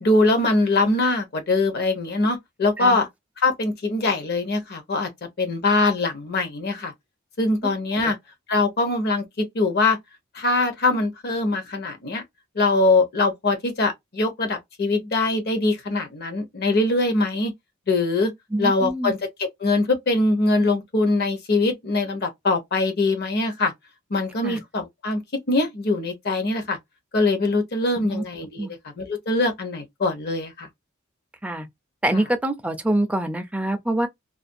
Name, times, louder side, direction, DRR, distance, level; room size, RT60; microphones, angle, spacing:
voice 1, 0.0-3.1 3.4-5.1 5.4-6.9 7.4-8.1 8.5-10.0 10.3-12.2 12.5-17.5 17.9-18.3 18.6-19.2 19.6-23.7 24.1-25.2 25.5-26.8 27.1-30.7, left 2 dB, 50° left, 0.8 m, -22 dB
voice 2, 18.5-19.1 24.4-24.6 28.1-28.2 28.6-28.7 31.4-31.7 32.0-34.1, right 1 dB, 5° right, 0.4 m, -25 dB
2.4 x 2.2 x 2.6 m
head